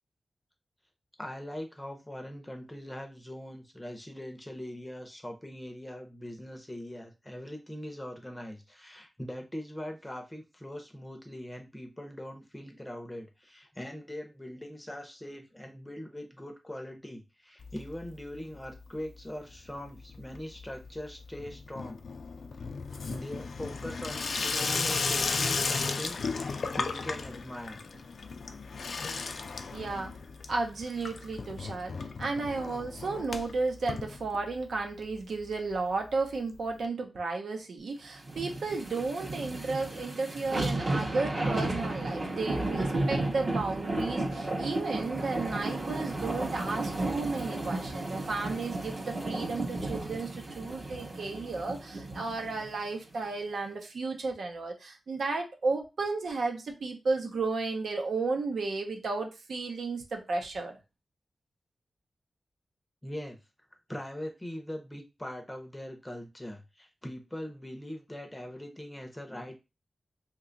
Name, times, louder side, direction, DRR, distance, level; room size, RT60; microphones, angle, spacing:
voice 1, 1.2-22.0 23.0-27.9 63.0-63.4 63.9-69.6, left 1 dB, 10° left, 4 dB, 0.6 m, -41 dB
Water tap faucet / Sink (filling or washing), 17.6-18.4 18.6-19.2 19.5-34.8 35.1-35.2 35.4-35.5 35.7-35.8 36.8-36.9, left 4 dB, 60° left, 0.3 m, -35 dB
voice 2, 29.7-30.1 30.5-60.8, right 3 dB, 75° right, 3 dB, 0.7 m, -33 dB
sound 1, 38.2-52.7 53.1-53.2, right 2 dB, 35° right, 0.7 m, -33 dB
2.9 x 2.3 x 3.8 m, 0.27 s
wide cardioid pair, 160°, 0 cm